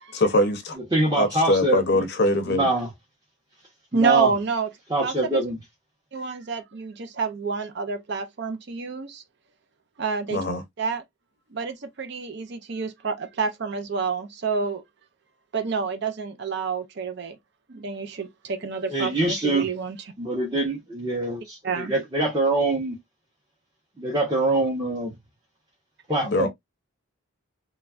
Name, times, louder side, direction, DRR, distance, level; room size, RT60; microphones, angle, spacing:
voice 1, 0.1-0.8 1.1-2.7 10.3-10.6 26.2-26.5, left 1 dB, 50° left, 0.6 m, -22 dB
voice 2, 0.9-2.1 2.5-2.9 3.9-4.3 4.9-5.6 18.9-19.7 20.2-23.0 24.0-25.1 26.1-26.5, right 2 dB, 20° right, 0.8 m, -24 dB
voice 3, 3.9-4.7 5.0-5.4 6.1-9.2 10.0-10.4 10.8-11.0 11.5-14.8 15.5-17.4 17.7-20.0 21.6-21.9, right 5 dB, 50° right, 0.5 m, -28 dB
3.1 x 2.4 x 2.4 m
head